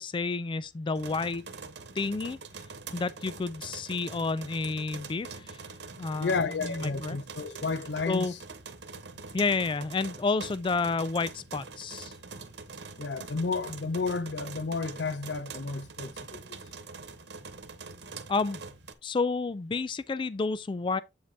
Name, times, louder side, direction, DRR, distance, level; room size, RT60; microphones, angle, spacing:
voice 1, 0.0-1.4 2.0-2.4 2.9-5.6 6.0-7.2 8.1-8.3 9.3-12.1 18.3-18.6 19.0-21.0, left 4 dB, 30° left, 0.3 m, -30 dB
sound 1, 0.9-18.9, right 4 dB, 80° right, 1.1 m, -44 dB
voice 2, 6.2-8.3 13.0-16.6, left 4 dB, 85° left, 0.6 m, -32 dB
8.3 x 5.0 x 3.4 m
head